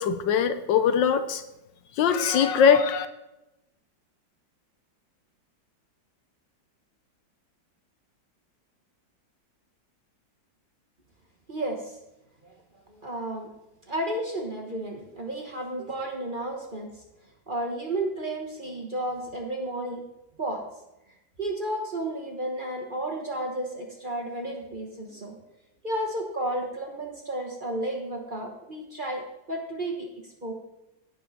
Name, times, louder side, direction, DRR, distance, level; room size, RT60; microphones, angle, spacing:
voice 1, 0.0-1.4 2.0-3.1, left 7 dB, 75° left, 10 dB, 1.4 m, -21 dB
voice 2, 11.5-12.0 12.4-12.5 12.9-13.5 13.9-17.0 17.5-20.0 20.4-20.6 21.4-25.4 25.8-29.2 29.5-30.5, right 1 dB, 30° right, 1 dB, 1.1 m, -32 dB
16.5 x 5.5 x 4.2 m, 0.93 s
omnidirectional pair, 2.1 m